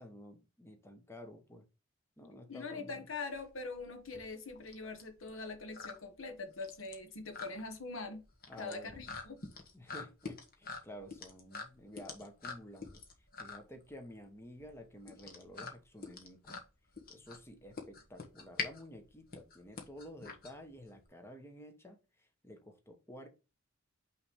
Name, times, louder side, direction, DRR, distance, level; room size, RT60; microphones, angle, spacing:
voice 1, 0.0-1.6 2.2-3.1 8.5-9.0 9.7-13.0 13.4-16.6 17.1-23.3, equal, 15° left, 1.0 m, -52 dB
voice 2, 2.5-8.3 8.6-9.4, left 3 dB, 80° left, 1.1 m, -43 dB
sound 1, 3.3-21.1, left 4 dB, 50° left, 1.3 m, -46 dB
5.8 x 3.2 x 5.1 m
head